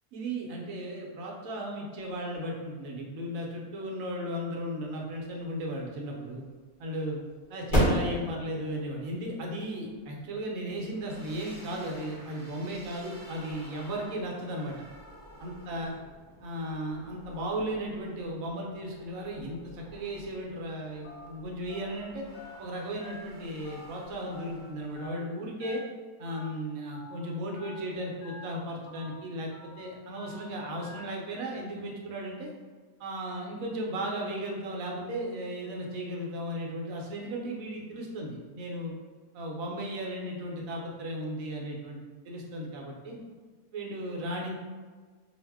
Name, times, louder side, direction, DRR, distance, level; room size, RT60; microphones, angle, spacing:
voice 1, 0.1-6.4 6.8-7.2 7.5-14.8 15.4-16.0 16.4-22.3 22.6-25.8 26.2-29.5 29.8-32.5 33.0-38.9 39.3-42.0 42.2-43.2 43.7-44.6, right 1 dB, 70° right, -1 dB, 1.0 m, -35 dB
sound 1, 5.4-12.4, equal, 45° left, 0.7 m, -33 dB
sound 2, 10.9-25.1, equal, 20° right, 0.5 m, -52 dB
Telephone, 21.0-21.3 21.7-21.9 22.3-22.6 23.0-23.2 23.6-23.9 24.3-24.5 25.0-25.2 25.6-25.8 26.3-26.5 26.9-27.1 27.6-27.8 28.2-28.4 28.9-29.1 29.5-29.7 30.2-30.4 30.8-31.0, left 4 dB, 80° left, 1.1 m, -48 dB
2.6 x 2.0 x 3.4 m, 1.5 s
omnidirectional pair, 1.6 m